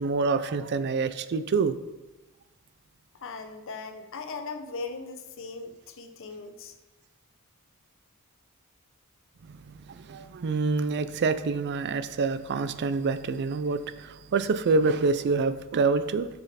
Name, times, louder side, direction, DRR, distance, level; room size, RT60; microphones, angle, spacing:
voice 1, 0.0-1.8 9.5-9.6 9.9-16.3, right 4 dB, 50° right, 0.4 m, -26 dB
voice 2, 3.2-6.7, left 4 dB, 60° left, 0.7 m, -39 dB
6.9 x 6.5 x 4.2 m
head